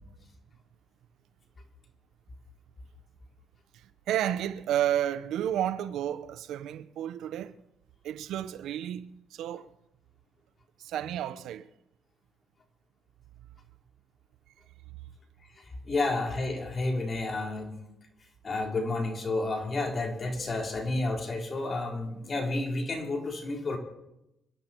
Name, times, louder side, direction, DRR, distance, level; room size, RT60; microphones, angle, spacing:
voice 1, 4.1-7.6 8.0-9.7 10.8-11.7, right 11 dB, 85° right, 0.8 m, -31 dB
voice 2, 15.9-17.8 18.4-23.8, left 2 dB, 40° left, 4.2 m, -30 dB
27.0 x 11.0 x 4.6 m
cardioid pair, 90°, 0 cm